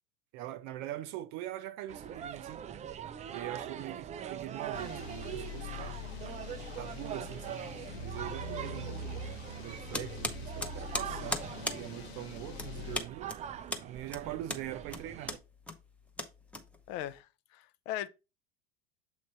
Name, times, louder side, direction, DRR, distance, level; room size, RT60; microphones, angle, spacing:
voice 1, 0.3-2.6 3.3-6.0 6.8-7.6 7.9-8.9 9.5-11.4 11.7-13.3 13.8-15.4, right 13 dB, 55° right, 0.7 m, -42 dB
sound 1, 1.9-15.4, right 9 dB, 20° right, 0.4 m, -43 dB
sound 2, 4.7-13.0, left 4 dB, 70° left, 1.0 m, -43 dB
sound 3, 9.9-17.1, left 1 dB, 5° left, 0.8 m, -39 dB
voice 2, 16.9-18.1, left 13 dB, 50° left, 0.6 m, -39 dB
7.2 x 3.1 x 4.3 m
hypercardioid pair, 80°, 33 cm